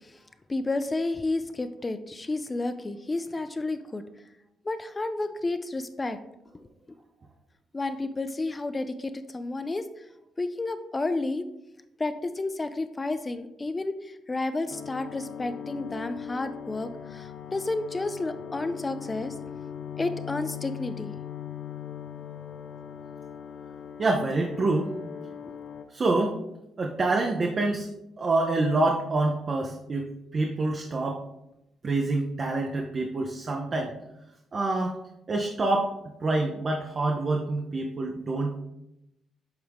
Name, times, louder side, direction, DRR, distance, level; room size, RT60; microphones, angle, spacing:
voice 1, 0.5-4.0 4.7-6.2 7.7-9.9 10.4-11.4 12.0-19.4 20.0-21.1 25.4-25.5, left 2 dB, 25° left, 10 dB, 0.4 m, -31 dB
sound 1, 14.7-25.8, left 8 dB, 75° left, 0.6 m, -40 dB
voice 2, 24.0-24.9 25.9-26.4 26.8-27.9 28.2-31.2 31.8-33.9 34.5-35.0 35.3-35.9 36.2-38.6, right 2 dB, 40° right, 2 dB, 0.6 m, -26 dB
7.9 x 3.6 x 3.5 m, 0.88 s
cardioid pair, 90°, 0 cm